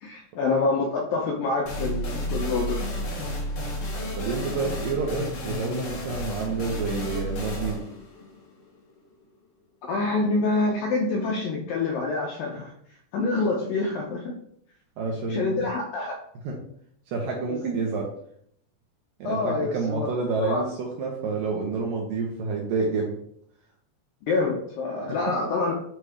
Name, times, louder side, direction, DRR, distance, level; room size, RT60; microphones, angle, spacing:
voice 1, 0.0-2.9 9.9-12.7 13.1-14.3 15.3-16.2 17.5-17.6 19.2-20.1 20.4-20.6 24.3-25.7, left 3 dB, 80° left, 0 dB, 2.1 m, -26 dB
sound 1, 1.7-9.1, equal, 55° left, 3.0 m, -32 dB
voice 2, 4.2-7.8 15.0-15.7 16.4-16.6 17.1-18.1 19.2-23.1, right 4 dB, 70° right, -1 dB, 2.1 m, -29 dB
9.3 x 3.3 x 4.9 m, 0.66 s
omnidirectional pair, 5.1 m